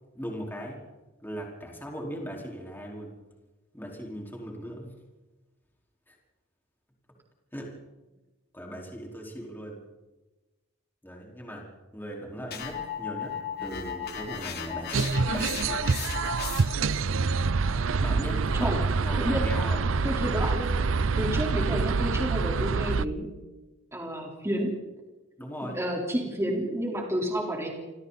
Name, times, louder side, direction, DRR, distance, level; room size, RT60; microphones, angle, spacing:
voice 1, 0.1-0.8 1.2-3.1 3.7-4.9 6.1-6.2 7.5-7.7 8.5-9.9 11.0-16.0 18.0-18.8 19.0-19.8 25.4-25.8, equal, 10° left, -1 dB, 4.7 m, -39 dB
sound 1, 12.5-16.9, left 8 dB, 55° left, 3.2 m, -36 dB
sound 2, 14.9-23.1, right 4 dB, 85° right, 0.6 m, -26 dB
voice 2, 19.2-19.5 20.0-20.8 21.2-23.3 23.9-24.8 25.6-27.7, equal, 15° right, -1 dB, 4.1 m, -30 dB
28.5 x 26.0 x 4.2 m, 1.1 s
head